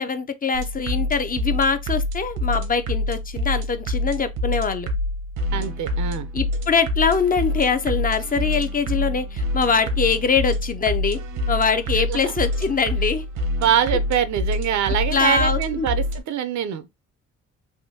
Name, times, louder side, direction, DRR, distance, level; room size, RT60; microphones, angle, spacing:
voice 1, 0.0-4.9 6.3-11.2 11.5-13.2 15.1-15.9, left 5 dB, 30° left, 0.5 m, -23 dB
sound 1, 0.5-16.2, left 1 dB, 90° right, 1.0 m, -26 dB
voice 2, 5.5-6.3 11.9-12.3 13.6-16.9, right 9 dB, 70° right, 0.6 m, -24 dB
3.5 x 2.6 x 2.7 m
cardioid pair, 90°, 30 cm